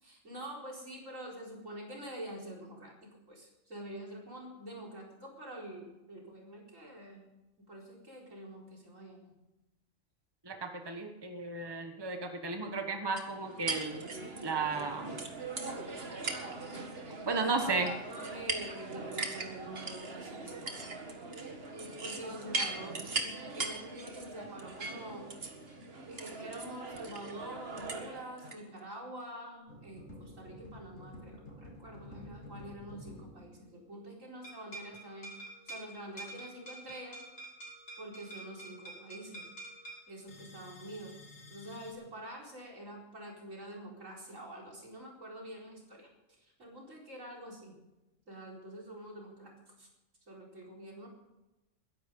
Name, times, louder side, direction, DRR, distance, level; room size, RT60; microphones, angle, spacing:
voice 1, 0.0-7.3 7.6-9.4 17.2-17.7 18.1-20.7 22.0-25.3 26.1-35.4 35.6-37.2 38.0-39.5 40.1-41.2 41.5-47.8 48.3-49.9 50.3-51.1, right 1 dB, 75° right, -2 dB, 4.8 m, -46 dB
voice 2, 10.4-14.0 14.4-15.2 17.3-17.9, right 4 dB, 20° right, 5 dB, 1.3 m, -34 dB
sound 1, 13.2-28.6, right 3 dB, 50° right, 1.9 m, -40 dB
sound 2, 29.7-34.2 34.4-41.9, right 1 dB, 75° left, 4.4 m, -49 dB
21.0 x 11.0 x 5.4 m, 0.97 s
omnidirectional pair, 1.3 m